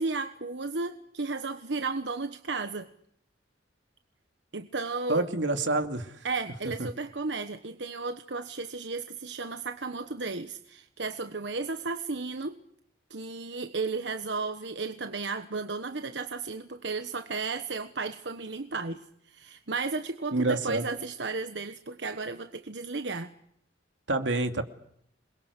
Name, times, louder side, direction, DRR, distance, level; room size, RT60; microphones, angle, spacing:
voice 1, 0.0-2.9 4.5-5.3 6.2-12.6 13.1-23.3, right 4 dB, 70° right, 8 dB, 1.3 m, -34 dB
voice 2, 5.1-6.1 6.8-6.9 20.3-20.8 24.1-24.6, right 2 dB, 90° right, 7 dB, 2.7 m, -27 dB
28.0 x 22.5 x 8.4 m, 0.70 s
head